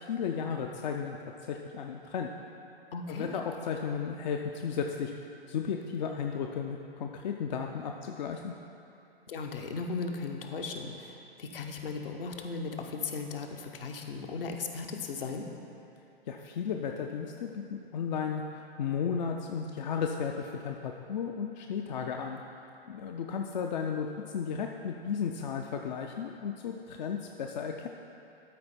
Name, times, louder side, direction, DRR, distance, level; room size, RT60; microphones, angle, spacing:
voice 1, 0.1-1.2 1.4-2.3 3.1-5.1 5.5-8.5 16.3-22.4 22.9-24.1 24.3-27.9, left 6 dB, 50° left, 3 dB, 0.5 m, -34 dB
voice 2, 2.9-3.4 9.3-15.5, left 4 dB, 65° left, 3 dB, 0.9 m, -37 dB
12.5 x 4.4 x 4.2 m, 2.8 s
figure-of-eight pair, 110°, 30 cm